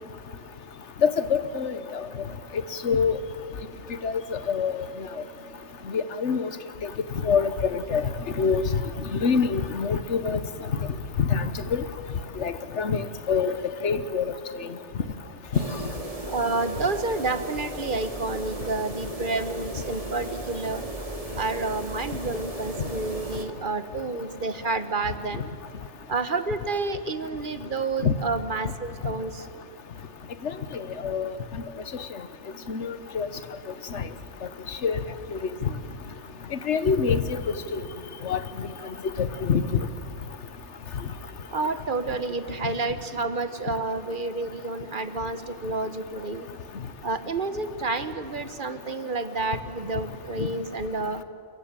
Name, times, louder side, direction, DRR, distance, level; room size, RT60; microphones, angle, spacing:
voice 1, 1.0-2.1 2.8-3.1 4.0-4.2 4.5-4.9 5.9-6.5 6.8-6.9 7.2-8.0 8.4-8.6 9.1-10.4 11.3-11.8 12.4-13.5 13.8-14.2 28.0-28.1 30.4-30.5 31.0-31.3 32.7-33.3 33.9-34.0 34.8-35.0 35.3-35.4 36.7-37.4 37.7-37.8 38.2-38.4 39.2-39.8, left 6 dB, 80° left, 12 dB, 1.4 m, -25 dB
sound 1, 15.5-23.4, right 1 dB, 30° right, 2.2 m, -36 dB
voice 2, 16.3-20.8 21.3-25.5 26.1-29.5 41.5-46.5 47.0-51.2, right 3 dB, 50° right, 11 dB, 1.2 m, -29 dB
28.0 x 14.5 x 8.9 m, 2.3 s
omnidirectional pair, 1.2 m